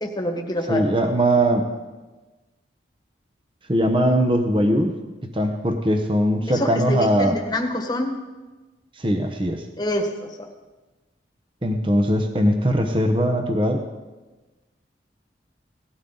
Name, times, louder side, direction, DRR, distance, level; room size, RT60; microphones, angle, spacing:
voice 1, 0.0-0.9 6.5-8.2 9.8-10.5, left 1 dB, 25° left, 3 dB, 1.4 m, -26 dB
voice 2, 0.7-1.7 3.7-5.0 5.3-7.3 9.0-9.6 11.6-13.8, equal, 30° right, 5 dB, 0.9 m, -20 dB
17.5 x 12.5 x 3.9 m, 1.2 s
head